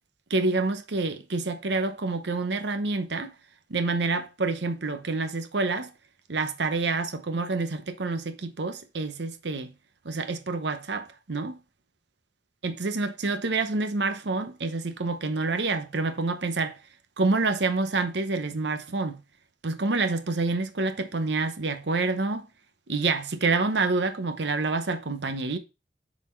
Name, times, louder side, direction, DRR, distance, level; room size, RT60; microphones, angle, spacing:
voice 1, 0.3-3.3 3.7-5.9 6.3-9.7 10.0-11.6 12.6-16.8 17.2-19.2 19.6-22.5 22.9-25.6, right 3 dB, 75° right, 0.9 m, -27 dB
7.2 x 4.2 x 4.5 m
head